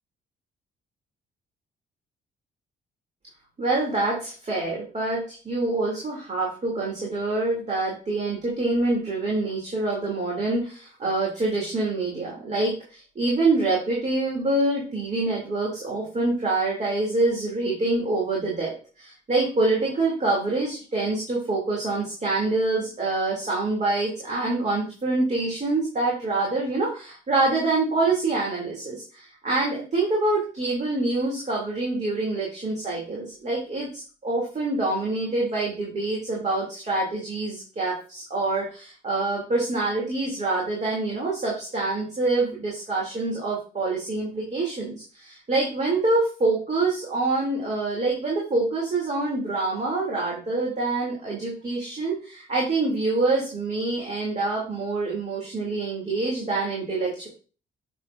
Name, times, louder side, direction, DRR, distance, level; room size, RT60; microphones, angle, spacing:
voice 1, 3.6-57.3, right 2 dB, 35° right, -3 dB, 2.8 m, -26 dB
7.7 x 6.8 x 2.6 m, 0.37 s
cardioid pair, 90°, 20 cm